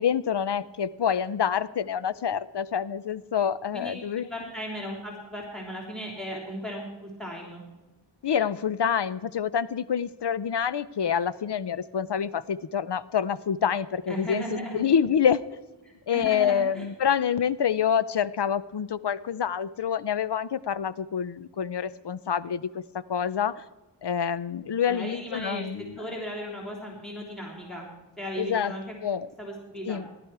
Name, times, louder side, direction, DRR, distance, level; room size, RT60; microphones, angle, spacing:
voice 1, 0.0-4.3 8.2-14.4 14.7-15.4 16.1-22.8 23.1-23.6 24.0-26.0 28.4-28.7 29.0-29.3 29.9-30.1, left 8 dB, 70° left, 16 dB, 0.6 m, -27 dB
voice 2, 3.7-7.6 14.1-14.8 16.1-16.8 24.9-27.8 28.2-28.8 29.4-30.0, equal, ahead, -1 dB, 3.3 m, -36 dB
16.5 x 11.5 x 4.7 m, 1.2 s
wide cardioid pair, 50°, 43 cm